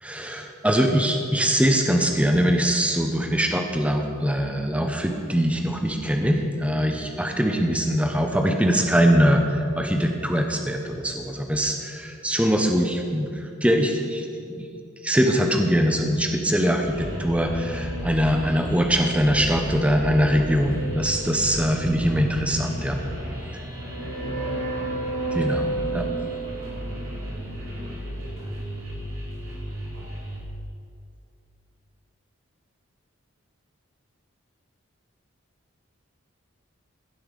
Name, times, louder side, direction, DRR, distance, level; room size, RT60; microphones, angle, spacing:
voice 1, 0.0-14.7 15.0-23.0 25.3-26.0, equal, 5° right, 3 dB, 0.8 m, -22 dB
sound 1, 16.8-30.4, right 1 dB, 65° right, 3.4 m, -32 dB
15.5 x 5.6 x 6.6 m, 2.4 s
head